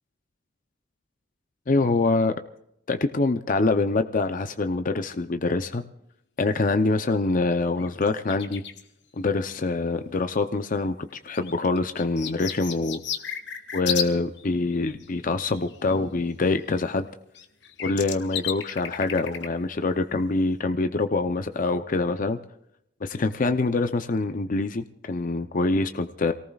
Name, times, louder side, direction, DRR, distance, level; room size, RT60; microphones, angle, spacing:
voice 1, 1.7-2.3 2.9-5.8 6.4-8.6 9.2-13.0 13.7-17.1 17.8-22.4 23.0-26.3, left 3 dB, 45° left, 8 dB, 0.6 m, -25 dB
sound 1, 7.5-7.6 7.8-8.8 10.2-10.3 11.3-14.1 14.4-16.0 17.1-17.2 17.3-19.5 20.1-20.2, left 9 dB, 65° left, 1.3 m, -34 dB
28.0 x 18.5 x 2.4 m, 0.76 s
head